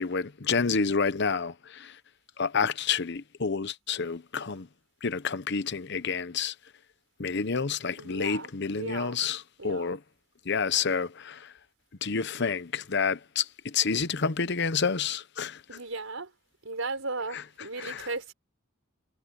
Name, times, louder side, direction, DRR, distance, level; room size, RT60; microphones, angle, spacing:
voice 1, 0.0-1.9 2.4-4.7 5.0-6.5 7.2-10.0 10.5-11.5 12.0-15.6 17.8-18.1, left 5 dB, 60° left, 0.9 m, -29 dB
voice 2, 8.0-9.2 9.6-9.9 15.7-16.3 16.6-18.3, right 3 dB, 80° right, 5.4 m, -36 dB
head